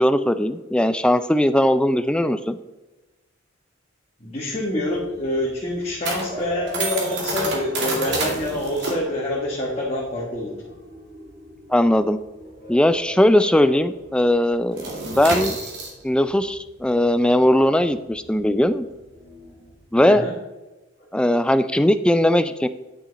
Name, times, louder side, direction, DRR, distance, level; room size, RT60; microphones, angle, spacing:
voice 1, 0.0-2.6 11.7-12.2 12.7-15.6 16.0-18.9 19.9-20.2 21.1-22.7, left 1 dB, 5° left, 12 dB, 0.3 m, -19 dB
voice 2, 4.2-10.6 20.0-20.3, left 1 dB, 30° left, -5 dB, 1.7 m, -26 dB
sound 1, 4.5-13.5 13.7-14.0 14.3-20.0, right 3 dB, 55° right, 2.2 m, -31 dB
sound 2, 6.1-15.6 17.3-19.7, left 1 dB, 40° right, 2.8 m, -40 dB
10.0 x 6.1 x 4.1 m, 1.1 s
head